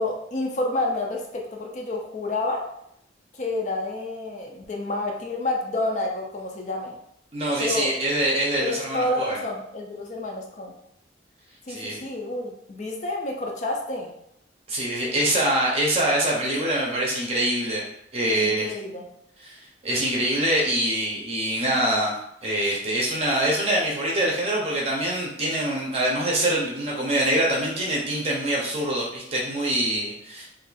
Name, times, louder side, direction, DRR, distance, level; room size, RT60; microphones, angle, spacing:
voice 1, 0.0-2.7 3.3-7.0 7.6-7.9 8.6-10.7 11.7-14.1 18.4-19.1, left 2 dB, 40° left, 1 dB, 0.4 m, -29 dB
voice 2, 7.3-9.4 11.7-12.0 14.7-17.8 18.1-18.7 19.4-22.2 22.4-30.5, right 1 dB, 30° right, -2 dB, 0.6 m, -24 dB
2.6 x 2.4 x 3.9 m, 0.75 s
head